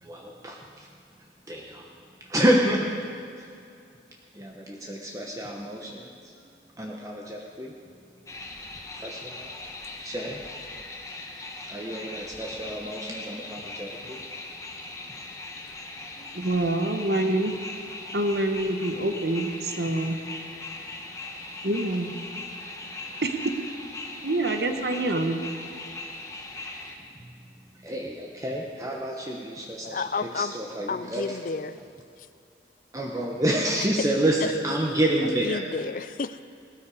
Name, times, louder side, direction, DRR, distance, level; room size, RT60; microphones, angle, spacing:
voice 1, 0.0-0.9 1.5-1.9 2.2-2.8 3.4-3.5 4.3-6.5 6.8-7.7 8.9-9.5 10.0-10.4 11.7-14.2 16.2-16.3 27.2-27.3 27.7-31.4 32.9-35.6, right 1 dB, 20° right, -1 dB, 1.0 m, -29 dB
sound 1, 8.3-26.9, left 2 dB, 15° left, 1.1 m, -39 dB
voice 2, 16.3-17.5 18.1-20.2 21.6-22.1 23.2-23.3 24.2-25.4, right 1 dB, 65° right, 6 dB, 1.1 m, -26 dB
voice 3, 29.8-30.5 30.9-31.8 35.4-36.4, left 4 dB, 50° left, 14 dB, 0.4 m, -31 dB
18.0 x 13.5 x 4.9 m, 2.5 s
head